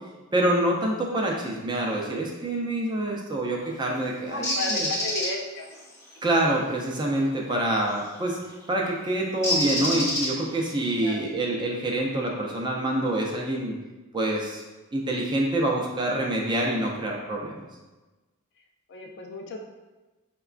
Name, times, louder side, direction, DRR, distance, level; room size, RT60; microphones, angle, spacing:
voice 1, 0.3-4.9 6.2-8.4 8.7-13.8 14.1-14.6 14.9-17.6, right 1 dB, 20° right, -1 dB, 0.4 m, -26 dB
voice 2, 4.3-5.8 11.0-11.2 18.9-19.6, left 2 dB, 55° left, 1 dB, 0.4 m, -34 dB
Bird, 4.4-5.3 7.9-8.1 9.4-10.6, left 1 dB, 15° left, 0.7 m, -26 dB
4.6 x 2.2 x 2.4 m, 1.2 s
head